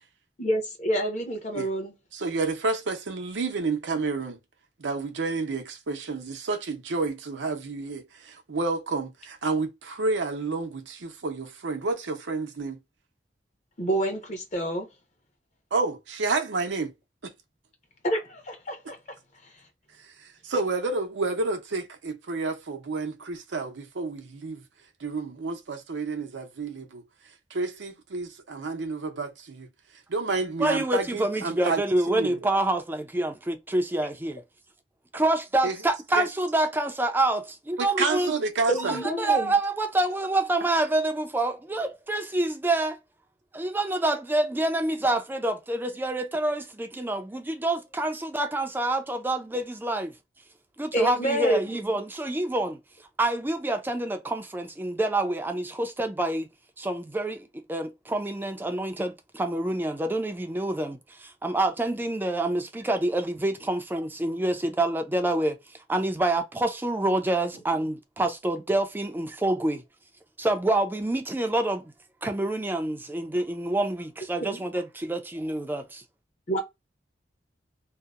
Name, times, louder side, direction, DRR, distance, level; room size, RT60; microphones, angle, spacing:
voice 1, 0.4-1.9 13.8-14.9 18.0-18.8 38.7-39.5 50.9-51.6 74.4-74.6 76.5-76.6, right 1 dB, 40° left, 0.8 m, -27 dB
voice 2, 2.1-4.4 4.8-12.8 15.7-16.9 17.2-17.3 20.2-24.6 25.0-27.0 27.5-29.7 30.1-31.8 32.1-32.3 35.6-35.8 36.2-36.3 37.8-39.0, right 3 dB, 90° right, 0.6 m, -30 dB
voice 3, 30.6-34.4 35.1-38.3 38.8-43.0 43.5-50.1 50.8-52.8 53.2-56.5 56.8-69.8 70.4-71.9 72.2-76.0, right 2 dB, 10° right, 0.4 m, -27 dB
2.7 x 2.0 x 2.3 m
head